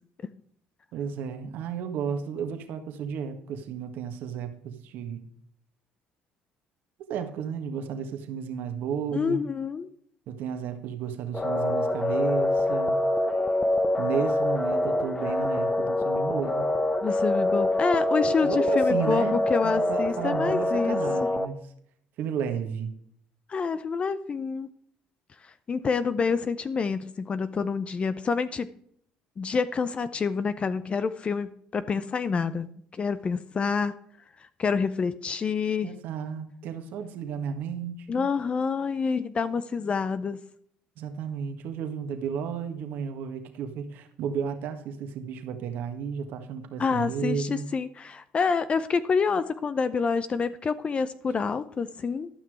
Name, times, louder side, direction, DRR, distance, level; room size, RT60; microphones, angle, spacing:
voice 1, 0.9-5.2 7.1-9.4 10.3-13.0 14.0-16.7 18.4-21.6 22.2-22.9 35.8-38.3 41.0-47.7, right 7 dB, 70° right, 7 dB, 1.6 m, -33 dB
voice 2, 9.1-9.9 17.0-21.3 23.5-24.7 25.7-28.7 29.4-32.7 33.0-33.9 34.6-35.9 38.1-40.4 46.8-52.3, left 5 dB, 35° left, 13 dB, 0.6 m, -27 dB
sound 1, 11.3-21.4, left 1 dB, 15° left, 1.0 m, -25 dB
12.0 x 6.0 x 4.8 m, 0.66 s
supercardioid pair, 85°, 3 cm